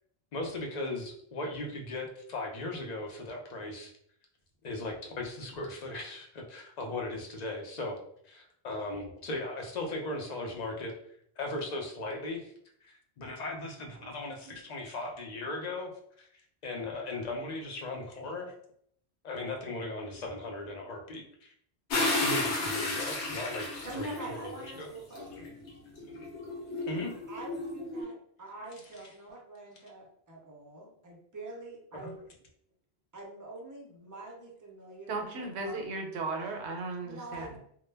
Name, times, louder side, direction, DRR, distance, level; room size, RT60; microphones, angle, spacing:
voice 1, 0.3-3.9 4.6-8.0 8.2-10.9 11.4-12.5 12.8-15.9 16.2-16.3 16.6-18.5 19.2-21.5 22.2-23.7 23.9-24.9 26.9-27.1 31.9-32.1, left 2 dB, 50° left, 1 dB, 0.5 m, -37 dB
sound 1, 21.9-24.5 25.1-28.0, left 2 dB, 85° left, 1.0 m, -33 dB
voice 2, 23.8-25.5 27.3-32.2 33.1-35.8 37.0-37.6, right 2 dB, 25° right, -2 dB, 0.4 m, -45 dB
voice 3, 35.1-37.5, right 3 dB, 75° right, 3 dB, 0.8 m, -36 dB
2.1 x 2.0 x 3.2 m, 0.65 s
omnidirectional pair, 1.1 m